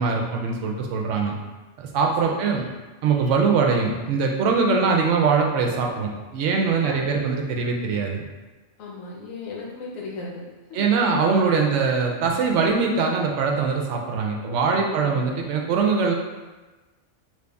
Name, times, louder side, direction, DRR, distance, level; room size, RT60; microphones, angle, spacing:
voice 1, 0.0-1.3 1.8-2.7 3.0-8.3 10.7-16.1, right 5 dB, 70° right, 1 dB, 0.9 m, -22 dB
voice 2, 2.2-2.5 6.9-7.2 8.8-10.8 11.5-11.8 14.5-15.3, left 3 dB, 90° left, -4 dB, 1.2 m, -36 dB
3.1 x 2.6 x 3.4 m, 1.2 s
omnidirectional pair, 1.3 m